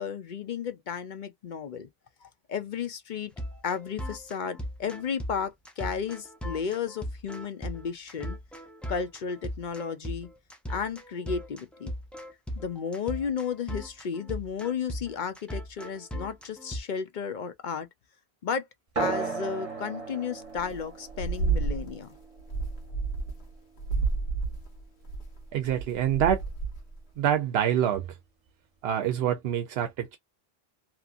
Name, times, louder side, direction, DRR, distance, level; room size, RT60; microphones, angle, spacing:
voice 1, 0.0-1.9 2.2-3.3 3.6-8.4 8.9-10.3 10.7-11.9 12.6-17.9 18.4-18.7 19.0-22.1, left 6 dB, 55° left, 0.6 m, -33 dB
sound 1, 3.4-16.8, equal, ahead, 0.5 m, -38 dB
sound 2, 19.0-24.0, right 4 dB, 35° right, 0.9 m, -36 dB
sound 3, 20.6-20.8 21.1-22.0 22.4-23.5 23.8-26.9, right 4 dB, 90° left, 1.3 m, -30 dB
voice 2, 25.5-26.4 27.2-28.1 28.8-30.2, right 10 dB, 80° right, 0.8 m, -26 dB
2.9 x 2.5 x 2.4 m
omnidirectional pair, 1.0 m